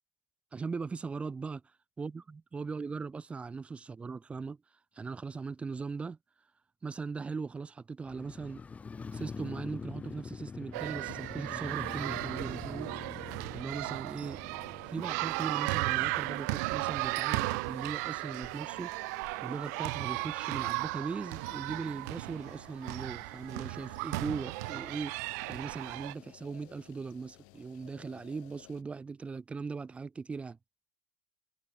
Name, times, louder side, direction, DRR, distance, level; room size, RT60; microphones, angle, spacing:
voice 1, 0.5-1.6 2.0-4.6 4.9-6.2 6.8-8.6 9.1-12.9 13.5-14.5 14.8-18.9 19.4-25.2 25.5-30.6, right 4 dB, 15° right, 0.6 m, -39 dB
Motorcycle, 8.0-18.2 18.5-18.6, left 5 dB, 15° left, 1.3 m, -45 dB
sound 1, 10.7-26.1, right 28 dB, 75° right, 0.7 m, -35 dB
sound 2, 15.9-28.8, left 38 dB, 65° left, 6.0 m, -58 dB
cardioid pair, 155°, 9 cm